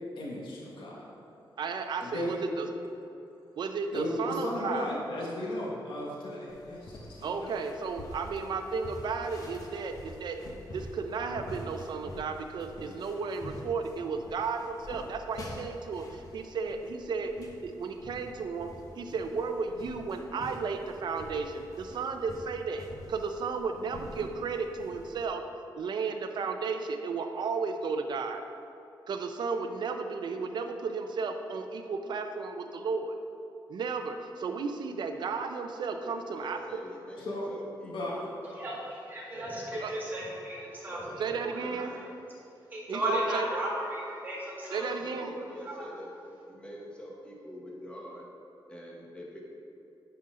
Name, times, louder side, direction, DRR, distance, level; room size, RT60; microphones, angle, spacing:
voice 1, 0.2-1.1 2.0-3.0 3.9-8.1 37.2-37.5 37.8-38.2, left 1 dB, 80° left, -4 dB, 1.5 m, -36 dB
voice 2, 1.6-2.7 3.6-4.9 7.2-10.4 10.7-18.7 19.0-25.4 25.8-28.4 29.1-33.2 33.7-36.6 39.8-39.9 41.2-41.9 42.9-43.5 44.7-45.3, right 4 dB, 60° right, 6 dB, 0.6 m, -34 dB
sound 1, 6.5-25.3, left 1 dB, 45° left, 1.0 m, -47 dB
voice 3, 36.0-38.8 39.3-41.3 41.6-42.2 45.0-48.2 48.7-49.4, equal, 15° left, -3 dB, 1.2 m, -46 dB
voice 4, 38.5-41.0 41.4-41.9 42.7-44.8 45.2-45.9, right 1 dB, 25° right, -6 dB, 2.0 m, -35 dB
10.0 x 5.7 x 3.8 m, 2.8 s
wide cardioid pair, 170°, 8 cm